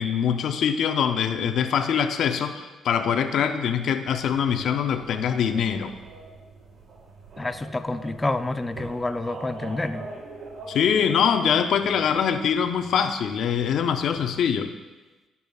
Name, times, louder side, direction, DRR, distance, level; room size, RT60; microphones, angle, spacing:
voice 1, 0.0-5.9 10.7-14.7, left 7 dB, 70° left, 8 dB, 0.6 m, -23 dB
sound 1, 4.0-14.4, right 2 dB, 65° right, 1.7 m, -44 dB
voice 2, 7.4-10.0, left 2 dB, 15° left, 8 dB, 0.5 m, -28 dB
20.5 x 6.9 x 2.4 m, 1.2 s
cardioid pair, 90°, 0 cm